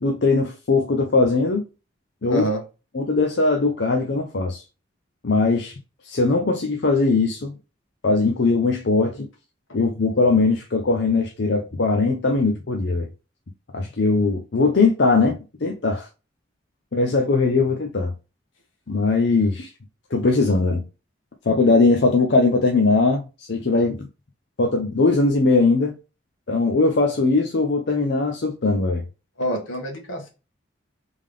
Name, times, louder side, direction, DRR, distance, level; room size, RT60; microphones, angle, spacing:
voice 1, 0.0-1.7 2.2-2.5 2.9-4.6 5.2-5.7 6.0-7.5 8.0-9.3 9.7-13.1 13.7-16.1 16.9-18.1 18.9-19.7 20.1-20.8 21.5-24.0 24.6-25.9 26.5-29.0, left 3 dB, 60° left, 0.6 m, -20 dB
voice 2, 2.3-2.6 29.4-30.3, equal, 90° left, 1.6 m, -26 dB
3.7 x 3.5 x 3.3 m
head